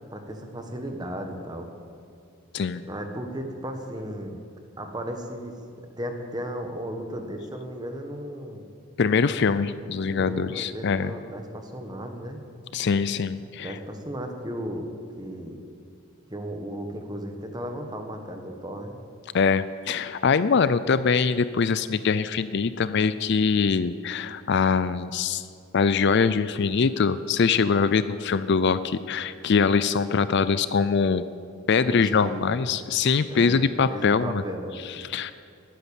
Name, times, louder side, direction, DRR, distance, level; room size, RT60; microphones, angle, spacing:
voice 1, 0.1-1.7 2.8-4.4 4.8-5.6 6.0-8.7 10.0-12.4 13.6-14.9 15.2-15.6 16.3-19.0 31.8-32.6 33.3-35.0, equal, 20° right, 4 dB, 1.4 m, -35 dB
voice 2, 9.0-11.1 12.7-13.8 19.3-25.4 25.7-31.2 31.7-34.4 35.0-35.3, left 5 dB, 50° left, 14 dB, 0.4 m, -23 dB
19.5 x 9.7 x 7.1 m, 2.4 s
head